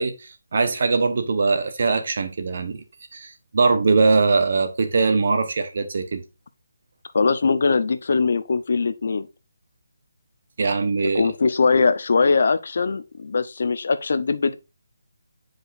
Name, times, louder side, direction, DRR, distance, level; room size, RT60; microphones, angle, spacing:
voice 1, 0.0-2.8 3.1-6.2 10.6-11.2, right 4 dB, 45° right, 1.0 m, -21 dB
voice 2, 7.1-9.3 11.0-14.5, left 4 dB, 50° left, 0.6 m, -21 dB
8.3 x 5.1 x 2.5 m
hypercardioid pair, 175°, 0 cm